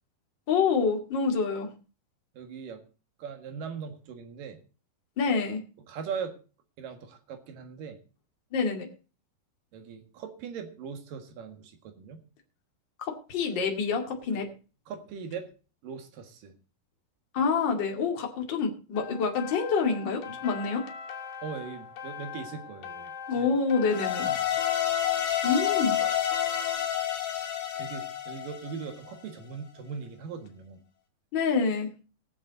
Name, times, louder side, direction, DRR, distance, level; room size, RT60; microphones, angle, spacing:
voice 1, 0.5-1.7 5.2-5.6 8.5-8.9 13.0-14.5 17.3-20.8 23.3-24.3 25.4-26.0 31.3-31.9, left 5 dB, 35° left, 1 dB, 2.3 m, -27 dB
voice 2, 2.3-2.8 3.2-4.6 5.9-6.4 6.8-8.0 9.7-12.2 14.9-15.5 15.8-16.5 21.4-23.5 24.3-24.6 25.1-25.5 26.0-26.1 27.3-30.8, right 6 dB, 65° right, 7 dB, 3.2 m, -40 dB
sound 1, 19.0-26.8, left 6 dB, 85° left, 3.7 m, -42 dB
sound 2, 23.9-29.1, left 10 dB, 65° left, 2.9 m, -29 dB
21.5 x 7.4 x 4.0 m, 0.35 s
omnidirectional pair, 4.3 m